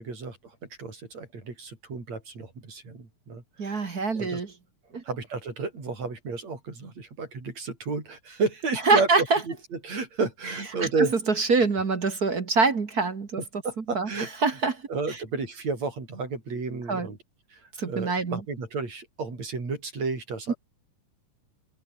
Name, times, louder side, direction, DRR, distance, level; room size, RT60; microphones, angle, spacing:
voice 1, 0.0-4.4 5.0-9.1 9.4-11.1 13.4-14.6 14.9-17.2 17.5-20.6, right 4 dB, 50° right, 7.6 m, -32 dB
voice 2, 3.6-4.5 4.9-5.0 8.9-9.4 11.4-13.4 13.9-14.1 14.4-14.8 16.9-17.1 17.8-18.4 20.5-20.6, right 4 dB, 35° right, 1.8 m, -24 dB
omnidirectional pair, 3.8 m